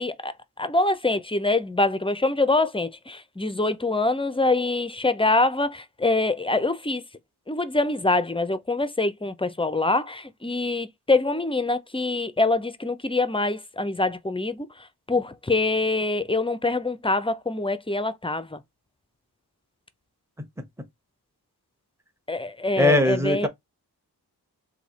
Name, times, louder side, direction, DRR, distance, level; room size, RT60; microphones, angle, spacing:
voice 1, 0.0-7.0 7.5-14.7 15.1-18.6 22.3-23.5, left 2 dB, 15° left, 0.5 m, -24 dB
voice 2, 22.8-23.5, left 1 dB, 5° right, 0.9 m, -20 dB
3.3 x 2.8 x 4.0 m
wide cardioid pair, 55°, 40 cm